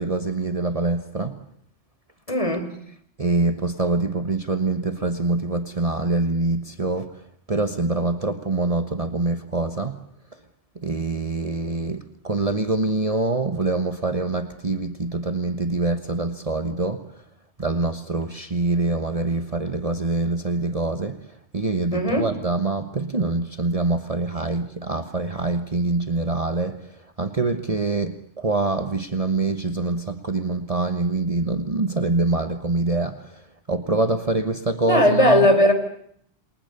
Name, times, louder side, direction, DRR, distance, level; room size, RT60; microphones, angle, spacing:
voice 1, 0.0-1.4 3.2-7.1 7.5-10.0 10.8-17.0 17.6-21.2 21.5-26.8 27.2-33.2 33.7-35.5, right 3 dB, 35° right, 8 dB, 1.3 m, -25 dB
voice 2, 2.3-2.7 21.9-22.3 34.9-35.7, left 1 dB, 30° left, 6 dB, 4.4 m, -18 dB
29.0 x 23.0 x 6.9 m, 0.68 s
omnidirectional pair, 1.1 m